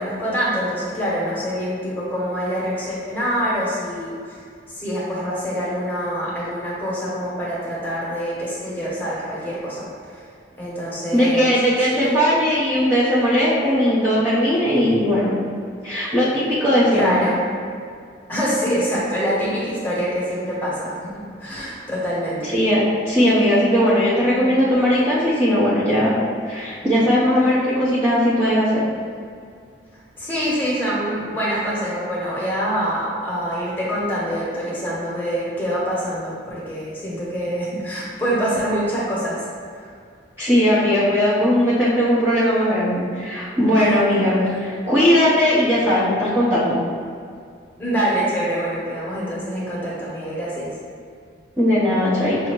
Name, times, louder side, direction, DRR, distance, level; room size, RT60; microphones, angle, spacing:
voice 1, 0.0-4.4 4.7-10.2 10.6-11.5 11.8-12.1 16.9-17.4 18.3-22.5 30.2-39.5 43.1-43.2 44.1-44.2 47.8-50.7, equal, 10° left, -8 dB, 1.0 m, -25 dB
voice 2, 11.1-15.3 15.8-17.1 22.4-26.2 26.4-28.8 40.4-46.8 51.6-52.4, equal, 15° right, -12 dB, 0.7 m, -18 dB
6.3 x 2.7 x 2.9 m, 2.3 s
head